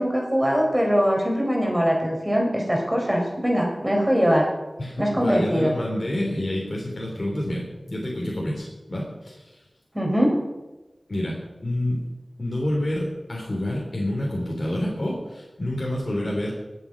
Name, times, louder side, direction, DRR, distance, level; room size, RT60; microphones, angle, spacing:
voice 1, 0.0-4.5 5.0-5.7 9.9-10.4, equal, 15° right, 0 dB, 4.4 m, -22 dB
voice 2, 4.8-9.6 11.1-12.0 12.4-16.5, left 1 dB, 45° left, -4 dB, 3.7 m, -28 dB
21.0 x 8.3 x 5.4 m, 1.1 s
wide cardioid pair, 50°, 0 cm